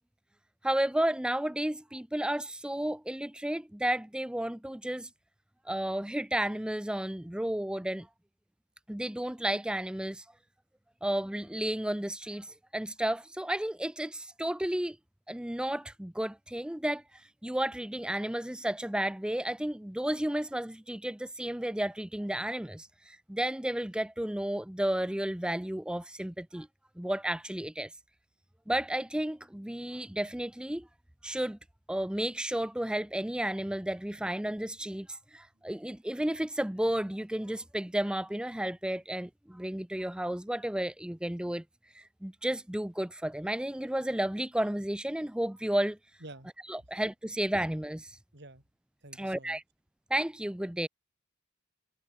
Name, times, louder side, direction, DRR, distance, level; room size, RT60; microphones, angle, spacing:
voice 1, 0.6-5.1 5.7-8.1 8.9-10.3 11.0-15.0 15.3-26.7 27.0-27.9 28.7-30.9 31.2-31.6 31.9-41.6 41.9-46.0 46.7-48.2 49.2-49.6 50.1-50.9, right 1 dB, 5° right, 0.5 m, -32 dB
voice 2, 48.3-48.6 49.0-49.6, right 2 dB, 55° right, 5.0 m, -49 dB
head